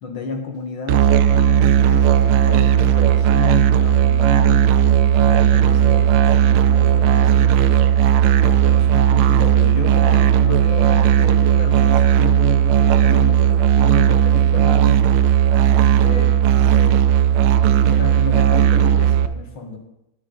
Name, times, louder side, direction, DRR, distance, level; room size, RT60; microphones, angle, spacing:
voice 1, 0.0-4.7 5.0-7.9 8.4-15.0 16.0-17.0 17.9-19.8, left 4 dB, 75° left, 3 dB, 2.4 m, -30 dB
Musical instrument, 0.9-19.3, right 10 dB, 75° right, 1.2 m, -15 dB
11.0 x 9.5 x 3.9 m, 0.87 s
omnidirectional pair, 2.3 m